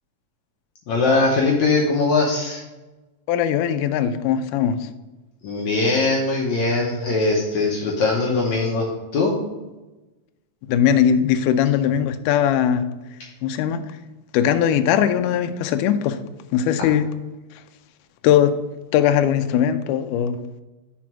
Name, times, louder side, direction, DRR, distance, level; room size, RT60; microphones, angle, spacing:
voice 1, 0.9-2.6 5.4-8.9 9.1-9.3, left 3 dB, 70° left, -2 dB, 1.9 m, -20 dB
voice 2, 3.3-4.9 10.7-12.9 13.4-13.8 14.3-16.2 16.5-17.1 18.2-18.6 18.9-20.4, left 9 dB, 85° left, 9 dB, 1.8 m, -19 dB
6.0 x 4.2 x 5.9 m, 1.1 s
omnidirectional pair, 4.2 m